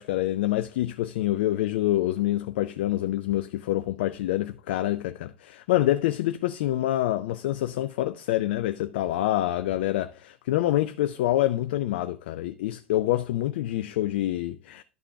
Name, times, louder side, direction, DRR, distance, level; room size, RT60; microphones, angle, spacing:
voice 1, 0.0-14.8, left 14 dB, 60° left, 0.4 m, -26 dB
11.5 x 6.5 x 2.4 m
figure-of-eight pair, 80°, 6 cm